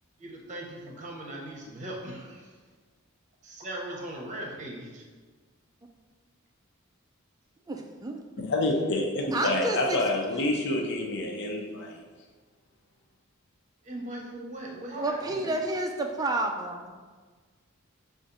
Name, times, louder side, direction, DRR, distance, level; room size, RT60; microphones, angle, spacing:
voice 1, 0.2-2.6 3.4-5.0 13.8-15.6, right 1 dB, 35° right, -2 dB, 0.8 m, -39 dB
voice 2, 7.7-8.2 9.3-10.0 15.0-16.8, right 2 dB, 15° right, 3 dB, 0.3 m, -30 dB
voice 3, 8.4-12.0, left 1 dB, 50° left, 1 dB, 0.5 m, -28 dB
6.6 x 2.4 x 2.6 m, 1.4 s
head